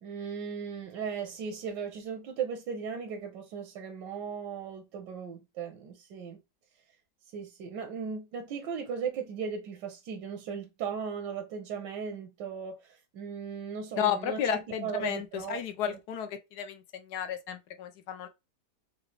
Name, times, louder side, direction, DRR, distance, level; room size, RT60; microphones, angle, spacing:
voice 1, 0.0-6.4 7.3-14.4 14.7-16.0, right 6 dB, 85° right, 1.4 m, -37 dB
voice 2, 14.0-18.3, left 8 dB, 75° left, 1.2 m, -33 dB
4.8 x 2.4 x 3.2 m
omnidirectional pair, 1.8 m